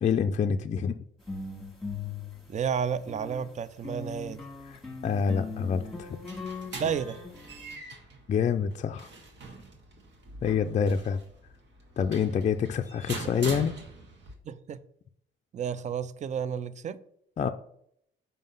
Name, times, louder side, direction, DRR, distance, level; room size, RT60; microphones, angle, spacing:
voice 1, 0.0-1.0 4.7-6.1 8.3-9.1 10.4-11.2 12.0-13.7 17.4-17.5, left 7 dB, 35° left, 0.4 m, -27 dB
sound 1, 1.2-3.5 3.8-7.8, left 4 dB, ahead, 1.6 m, -39 dB
voice 2, 2.5-4.4 6.7-7.2 13.2-13.4 14.4-14.8 15.5-17.0, right 7 dB, 35° right, 0.4 m, -32 dB
sound 2, 5.9-14.3, right 3 dB, 65° right, 1.5 m, -43 dB
5.4 x 3.7 x 5.5 m
cardioid pair, 90°, 20 cm